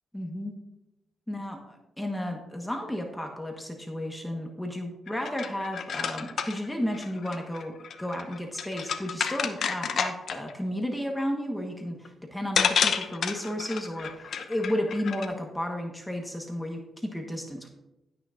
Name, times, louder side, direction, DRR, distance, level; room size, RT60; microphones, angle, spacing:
voice 1, 0.1-0.6 1.3-17.7, left 1 dB, 10° left, 2 dB, 1.3 m, -33 dB
sound 1, 5.1-10.5 12.0-12.1 12.6-15.3, left 6 dB, 70° left, 0.7 m, -30 dB
16.5 x 6.0 x 2.5 m, 0.95 s
cardioid pair, 75°, 0 cm